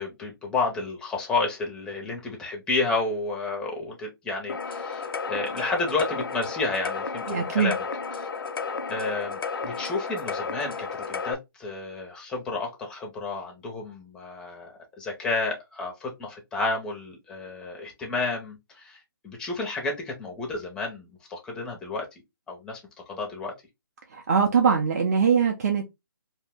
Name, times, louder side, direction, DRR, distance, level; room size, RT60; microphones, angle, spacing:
voice 1, 0.0-7.8 8.2-8.3 8.9-22.2 22.5-22.8 23.1-23.5, left 3 dB, 5° left, 0.5 m, -31 dB
sound 1, 4.5-11.3, left 5 dB, 75° left, 0.5 m, -33 dB
voice 2, 7.3-7.7 24.1-25.9, right 6 dB, 45° right, 0.5 m, -22 dB
2.6 x 2.1 x 3.4 m
hypercardioid pair, 160°, 12 cm